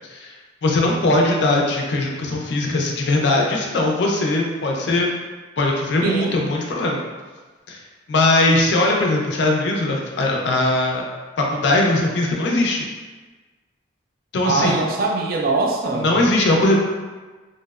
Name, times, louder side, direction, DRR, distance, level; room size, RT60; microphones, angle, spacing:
voice 1, 0.6-5.1 5.6-7.0 7.7-7.8 8.1-11.1 11.4-12.8 14.3-14.8 16.0-16.8, left 2 dB, 65° left, 0 dB, 0.4 m, -20 dB
voice 2, 6.0-6.4 14.4-16.1, right 3 dB, 50° right, 0 dB, 0.3 m, -22 dB
2.7 x 2.0 x 2.3 m, 1.3 s
head